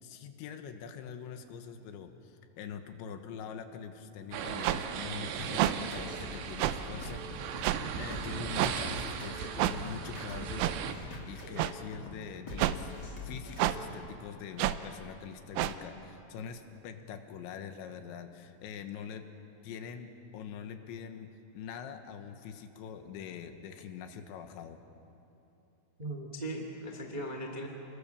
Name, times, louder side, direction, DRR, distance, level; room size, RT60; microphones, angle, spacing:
voice 1, 0.0-10.9 11.3-12.9 13.2-19.3 19.6-24.8, left 7 dB, 75° left, 7 dB, 3.4 m, -44 dB
sound 1, 4.3-10.9, right 7 dB, 70° right, 3.3 m, -38 dB
sound 2, 4.6-4.8 5.6-5.7 6.6-6.8 7.6-7.8 8.6-8.7 9.6-9.7 10.6-10.8 11.6-11.7 12.6-12.8 13.6-13.8 14.6-14.8 15.6-15.7, right 15 dB, 90° right, 3.3 m, -28 dB
sound 3, 5.4-14.0, left 2 dB, 30° left, 2.4 m, -44 dB
voice 2, 26.0-27.7, right 1 dB, 45° right, 2 dB, 0.5 m, -38 dB
30.0 x 21.0 x 7.0 m, 2.9 s
omnidirectional pair, 5.5 m